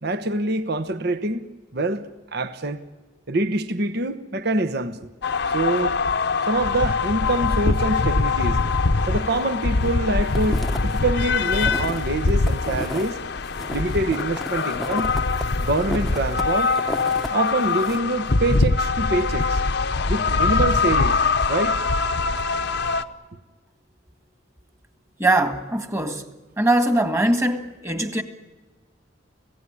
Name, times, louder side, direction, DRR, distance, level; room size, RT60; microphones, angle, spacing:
voice 1, 0.0-1.5 1.7-2.8 3.3-5.1 5.5-6.0 6.5-8.6 9.1-13.2 13.7-15.1 15.6-16.7 17.3-19.6 20.1-21.2 21.5-21.8, right 2 dB, 60° right, 1.1 m, -25 dB
sound 1, 5.2-23.0, left 4 dB, 65° left, 0.9 m, -23 dB
sound 2, 9.3-10.0 10.2-13.1 13.4-17.3 17.6-18.0, equal, ahead, 0.9 m, -34 dB
voice 2, 25.2-26.3 26.6-28.2, right 1 dB, 15° right, 1.8 m, -21 dB
25.0 x 17.0 x 10.0 m
head